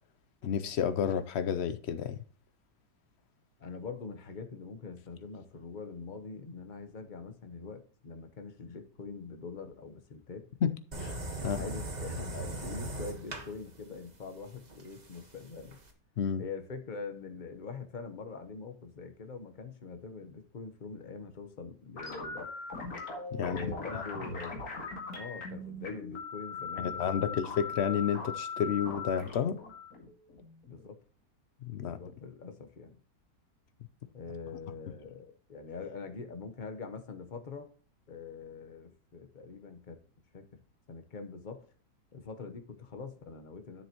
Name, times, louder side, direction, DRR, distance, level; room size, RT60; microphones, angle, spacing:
voice 1, 0.4-2.2 10.6-10.7 11.0-11.2 11.4-11.6 16.2-16.4 23.3-23.7 23.9-24.0 26.8-29.6 31.6-32.0, left 8 dB, 75° left, 0.6 m, -31 dB
voice 2, 3.6-10.5 11.4-15.8 16.4-22.5 23.4-24.6 25.1-27.4 30.7-31.0 31.8-33.0 34.1-37.7 38.1-40.0 40.3-40.6 40.9-41.6 42.1-43.8, left 4 dB, 35° left, 0.9 m, -44 dB
sound 1, 10.9-15.9, right 1 dB, 25° right, 1.3 m, -40 dB
sound 2, 22.0-30.9, left 4 dB, 55° left, 2.4 m, -40 dB
10.0 x 7.6 x 2.9 m
omnidirectional pair, 1.9 m